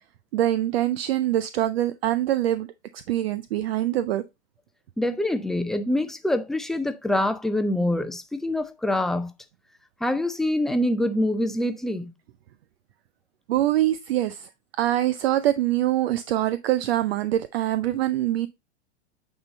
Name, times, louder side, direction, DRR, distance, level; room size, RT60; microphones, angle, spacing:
voice 1, 0.3-2.7 3.1-4.2 13.5-14.5 14.8-18.5, right 13 dB, 60° right, 0.5 m, -24 dB
voice 2, 5.0-9.3 10.0-12.1, left 1 dB, ahead, 0.5 m, -25 dB
8.6 x 3.8 x 4.0 m
figure-of-eight pair, 100°, 35 cm